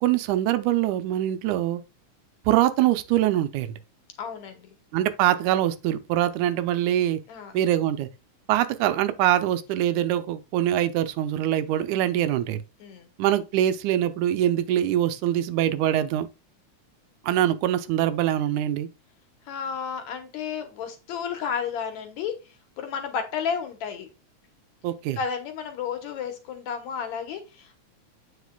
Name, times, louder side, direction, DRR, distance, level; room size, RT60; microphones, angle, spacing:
voice 1, 0.0-1.8 2.5-3.7 4.9-7.2 7.5-8.1 8.5-12.6 13.2-16.3 17.2-18.9 24.8-25.2, right 12 dB, 80° right, 2.0 m, -23 dB
voice 2, 4.2-4.7 7.3-7.5 12.8-13.1 19.5-22.4 22.8-24.1 25.2-27.8, left 7 dB, 70° left, 2.3 m, -32 dB
8.2 x 5.8 x 2.3 m
omnidirectional pair, 3.5 m